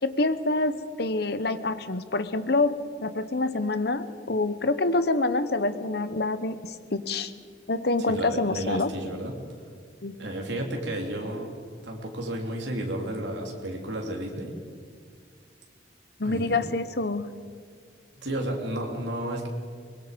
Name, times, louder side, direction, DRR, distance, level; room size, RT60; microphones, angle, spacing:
voice 1, 0.0-7.3 7.7-8.9 10.0-10.2 16.2-17.3, left 2 dB, 55° left, 12 dB, 0.9 m, -26 dB
voice 2, 8.1-9.4 10.2-11.6 11.8-14.5 16.2-16.6 18.2-19.5, right 1 dB, 70° right, 0 dB, 3.2 m, -32 dB
23.5 x 21.5 x 5.2 m, 2.1 s
head